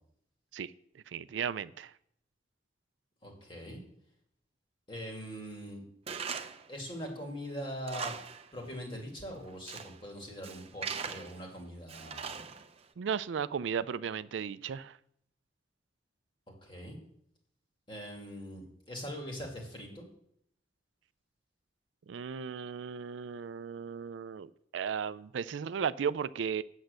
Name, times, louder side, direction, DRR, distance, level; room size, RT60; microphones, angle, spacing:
voice 1, 1.1-1.9 13.0-15.0 22.1-26.6, right 7 dB, 85° right, 16 dB, 0.4 m, -35 dB
voice 2, 3.2-3.8 4.9-5.8 6.7-8.2 8.5-12.3 16.6-17.0 17.9-20.0, equal, 25° left, 0 dB, 2.3 m, -42 dB
Tools, 6.1-6.7 7.1-7.2 7.7-8.5 8.7-8.8 9.4-10.0 10.4-11.4 11.9-12.8, right 6 dB, 35° right, 0.6 m, -40 dB
8.2 x 7.6 x 6.4 m, 0.70 s
head